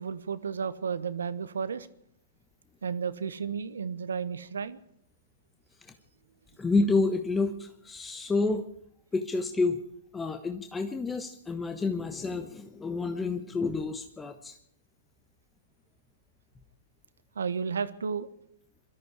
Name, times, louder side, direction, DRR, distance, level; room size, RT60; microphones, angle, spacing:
voice 1, 0.0-1.9 2.8-4.8 17.3-18.3, right 6 dB, 85° right, 15 dB, 1.1 m, -32 dB
voice 2, 6.6-8.6 9.1-9.8 10.1-14.5, left 3 dB, 15° left, 6 dB, 1.2 m, -29 dB
22.0 x 13.0 x 4.9 m, 0.73 s
hypercardioid pair, 120°, 0 cm